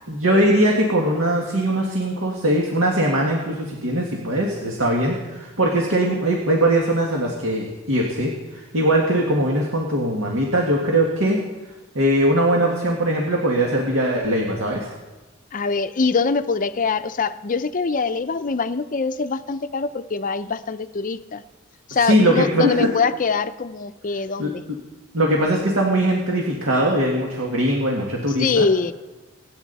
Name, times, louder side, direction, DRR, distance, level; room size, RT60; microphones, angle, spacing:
voice 1, 0.1-11.4 12.0-14.9 21.9-22.9 24.4-24.5 25.1-28.7, right 1 dB, 70° right, -1 dB, 1.9 m, -21 dB
voice 2, 15.5-21.4 21.9-24.6 28.4-28.9, left 4 dB, 40° left, 11 dB, 0.6 m, -23 dB
24.5 x 9.5 x 4.1 m, 1.1 s
head